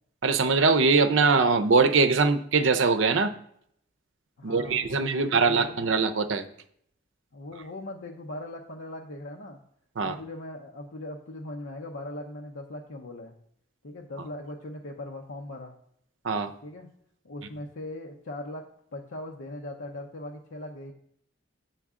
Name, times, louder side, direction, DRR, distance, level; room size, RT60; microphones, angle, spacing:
voice 1, 0.2-3.3 4.4-6.4 10.0-10.2 16.2-16.5, right 4 dB, 80° right, 10 dB, 0.6 m, -22 dB
voice 2, 4.4-5.9 7.3-9.6 10.0-13.3 13.8-15.7 16.6-16.9 17.2-20.9, left 1 dB, 80° left, 0 dB, 0.7 m, -39 dB
7.0 x 6.9 x 3.7 m, 0.68 s
head